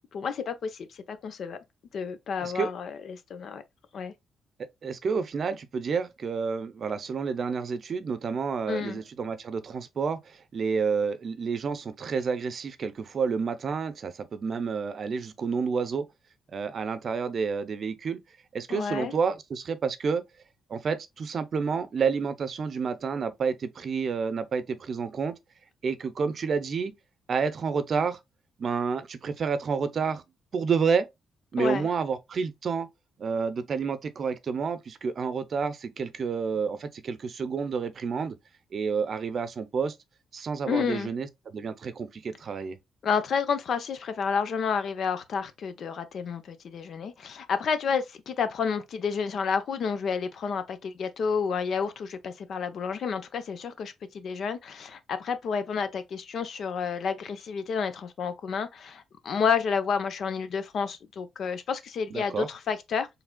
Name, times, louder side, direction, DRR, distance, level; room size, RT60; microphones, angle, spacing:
voice 1, 0.1-1.6 1.9-3.6 3.9-4.1 8.7-9.0 18.7-19.1 31.6-31.9 40.7-41.1 43.0-63.1, left 6 dB, 60° left, 0.7 m, -30 dB
voice 2, 4.8-16.1 16.5-18.2 18.5-20.2 20.7-25.3 25.8-26.9 27.3-28.2 28.6-30.2 30.5-31.1 31.5-32.9 33.2-38.4 38.7-39.9 40.3-42.8 62.1-62.5, right 5 dB, 50° right, 0.6 m, -29 dB
4.8 x 3.3 x 2.2 m
cardioid pair, 90°, 0 cm